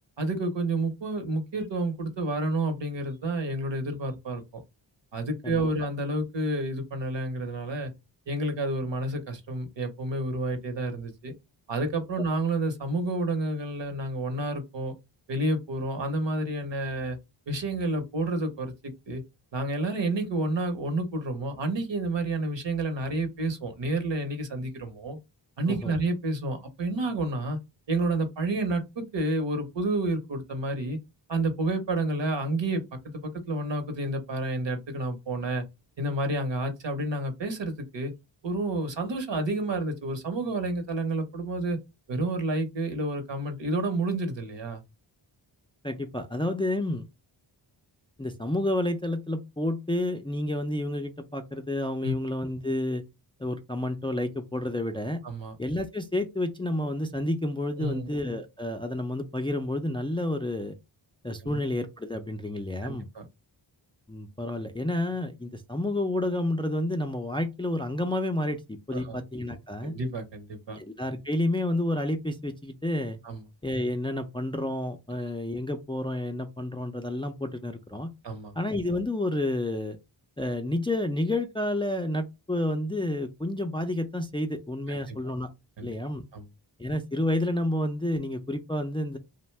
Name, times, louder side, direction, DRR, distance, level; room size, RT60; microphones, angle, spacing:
voice 1, 0.2-4.4 5.1-7.9 8.3-11.3 11.7-14.9 15.3-17.2 17.5-18.7 19.1-19.2 19.5-25.2 25.6-27.6 27.9-31.0 31.3-35.6 36.0-38.1 38.4-41.8 42.1-44.8 52.0-52.2 55.2-55.6 57.8-58.1 61.4-61.6 62.8-63.2 68.9-69.2 69.8-70.8 73.2-73.4 78.2-78.5 84.9-85.2 85.8-85.9 86.3-86.5, right 2 dB, 65° right, 0.9 m, -30 dB
voice 2, 45.8-47.0 48.2-53.0 53.4-55.2 55.6-60.8 61.2-63.1 64.1-69.9 70.7-73.2 73.6-78.1 78.6-80.0 80.4-85.5 85.8-86.2 86.8-89.2, left 1 dB, 10° left, 0.3 m, -30 dB
2.6 x 2.2 x 3.2 m
cardioid pair, 50°, 48 cm